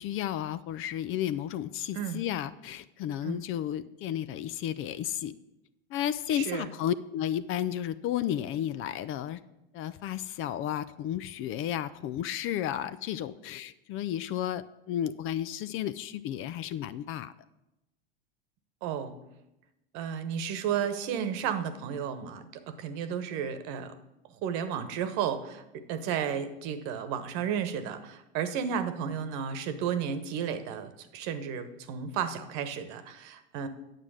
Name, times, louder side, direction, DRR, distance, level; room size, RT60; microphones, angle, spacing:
voice 1, 0.0-5.3 5.9-9.4 9.7-17.3, left 11 dB, 40° left, 15 dB, 0.5 m, -33 dB
voice 2, 6.3-6.7 18.8-19.1 19.9-23.9 24.4-25.6 25.9-33.7, right 8 dB, 55° right, 10 dB, 1.2 m, -33 dB
9.1 x 7.5 x 6.3 m, 0.92 s
hypercardioid pair, 85°, 31 cm